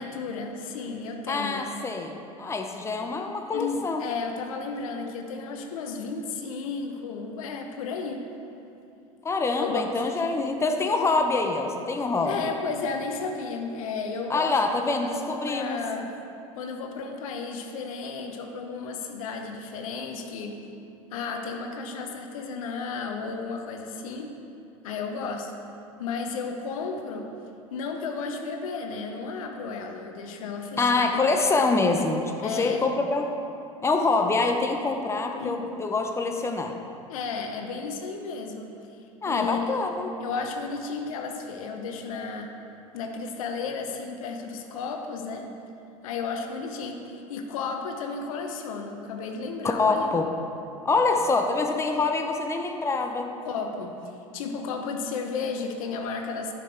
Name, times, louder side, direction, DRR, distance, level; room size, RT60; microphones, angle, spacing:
voice 1, 0.0-1.7 3.5-8.2 9.6-9.8 10.1-10.6 12.2-16.1 16.6-20.6 21.1-24.3 24.8-25.5 26.0-27.3 27.7-31.1 32.4-32.8 35.4-35.7 37.1-38.7 39.3-42.5 42.9-45.5 46.0-50.1 53.4-54.0 54.3-56.5, left 4 dB, 70° left, 3 dB, 1.0 m, -33 dB
voice 2, 1.3-4.1 9.2-12.5 14.3-15.8 30.8-33.4 33.8-36.8 39.2-40.1 49.8-50.3 50.8-53.3, left 3 dB, 15° left, 4 dB, 0.8 m, -25 dB
11.0 x 6.0 x 4.4 m, 2.7 s
hypercardioid pair, 80°, 18 cm